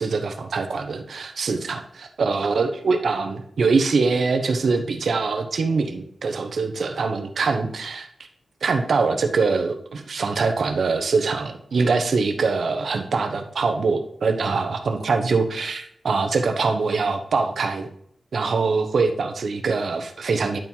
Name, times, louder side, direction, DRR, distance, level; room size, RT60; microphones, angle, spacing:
voice 1, 0.0-8.1 8.6-17.9 18.3-20.6, right 4 dB, 75° right, 6 dB, 1.1 m, -23 dB
10.5 x 4.7 x 5.5 m, 0.67 s
wide cardioid pair, 115°, 0 cm